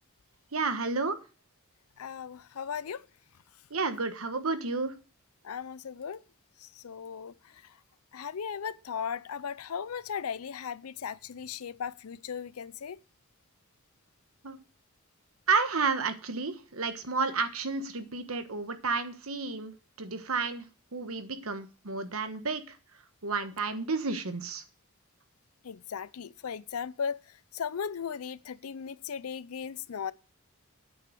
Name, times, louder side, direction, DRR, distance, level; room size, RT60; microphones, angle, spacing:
voice 1, 0.5-1.2 3.7-5.0 14.4-14.6 15.5-19.7 20.0-20.6 20.9-22.8 23.2-24.6, right 4 dB, 75° right, 1.3 m, -31 dB
voice 2, 2.0-3.1 5.4-6.2 6.6-7.8 8.1-13.0 25.6-30.1, left 7 dB, 85° left, 0.5 m, -37 dB
8.6 x 6.4 x 6.3 m
head